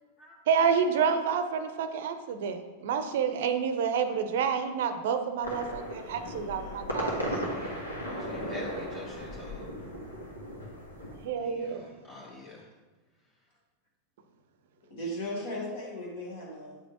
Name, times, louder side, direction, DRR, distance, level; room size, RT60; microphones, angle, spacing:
voice 1, 0.5-7.2 11.2-11.8, right 6 dB, 55° right, 9 dB, 0.6 m, -28 dB
sound 1, 5.4-11.3, equal, 85° left, 1.4 m, -36 dB
voice 2, 6.0-6.9 14.9-16.8, equal, 55° left, -3 dB, 1.5 m, -38 dB
voice 3, 7.5-9.7 11.4-12.6, left 2 dB, 25° left, -4 dB, 1.1 m, -46 dB
9.0 x 5.0 x 2.9 m, 1.3 s
figure-of-eight pair, 90°, 0 cm